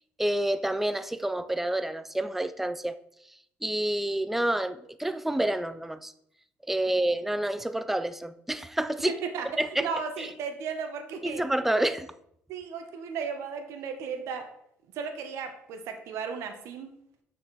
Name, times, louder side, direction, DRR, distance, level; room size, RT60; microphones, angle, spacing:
voice 1, 0.2-3.0 3.6-6.1 6.6-9.1 9.6-9.9 10.2-10.3 11.2-12.1, right 1 dB, 5° right, 13 dB, 0.4 m, -28 dB
voice 2, 9.0-9.5 9.8-11.4 11.7-11.8 12.5-14.5 14.9-16.9, right 6 dB, 70° right, 6 dB, 1.2 m, -35 dB
6.4 x 6.2 x 4.1 m, 0.73 s
cardioid pair, 125°, 5 cm